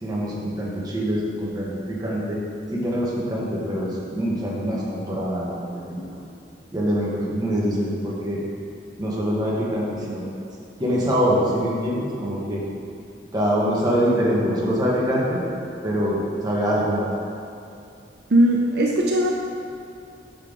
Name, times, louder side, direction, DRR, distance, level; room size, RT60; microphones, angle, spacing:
voice 1, 0.0-2.4 2.7-6.0 6.7-8.4 9.0-10.2 10.8-12.6 13.3-15.4 15.8-17.1, equal, 25° right, -5 dB, 1.1 m, -24 dB
voice 2, 18.3-19.3, right 1 dB, 65° right, -1 dB, 0.5 m, -18 dB
5.6 x 5.1 x 3.7 m, 2.5 s
head